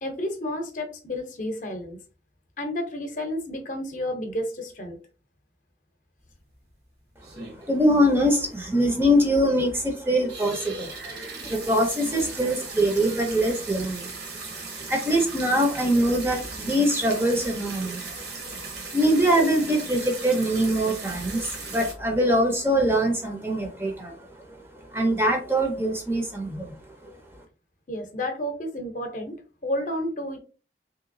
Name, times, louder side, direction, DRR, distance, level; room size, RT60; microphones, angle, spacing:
voice 1, 0.0-2.0 2.6-5.0 27.9-29.4 29.6-30.4, left 1 dB, 45° left, 5 dB, 0.7 m, -31 dB
sound 1, 6.2-6.3 6.7-6.8 7.2-7.9 8.2-8.3 8.5-8.6 9.0-9.1 9.6-9.8 10.2-21.9, right 4 dB, 70° right, 1.1 m, -38 dB
voice 2, 7.3-14.3 14.8-24.6 24.9-26.7 27.0-27.1, equal, 15° right, 2 dB, 0.5 m, -23 dB
3.2 x 2.9 x 2.6 m, 0.36 s
head